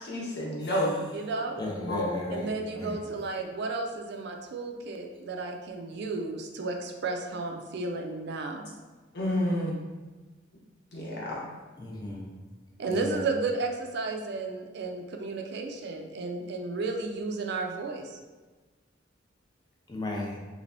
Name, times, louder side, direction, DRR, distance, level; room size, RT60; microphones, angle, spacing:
voice 1, 0.0-0.9 1.9-2.1 9.1-9.8 10.9-11.4, left 1 dB, 65° left, -4 dB, 1.0 m, -29 dB
voice 2, 1.0-1.6 2.3-8.7 12.8-18.2, right 3 dB, 65° right, 3 dB, 0.4 m, -33 dB
voice 3, 1.6-2.9 11.8-12.3 13.0-13.1 19.9-20.4, left 2 dB, 25° left, -1 dB, 0.6 m, -35 dB
3.3 x 3.2 x 2.6 m, 1.3 s
head